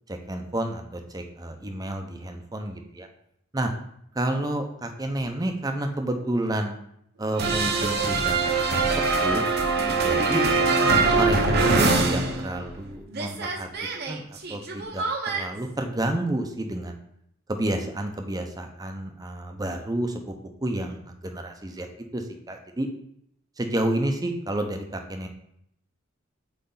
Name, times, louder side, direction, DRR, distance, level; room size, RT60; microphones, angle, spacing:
voice 1, 0.1-3.1 3.5-3.7 4.1-6.7 7.2-9.4 9.8-10.4 11.1-13.7 14.1-14.2 14.5-17.0 17.5-20.4 20.6-21.9 22.1-22.9 23.6-25.3, right 1 dB, 20° right, 5 dB, 0.6 m, -30 dB
sound 1, 7.4-12.9 13.1-15.4, right 3 dB, 55° right, 0.8 m, -23 dB
8.0 x 3.3 x 3.9 m, 0.73 s
head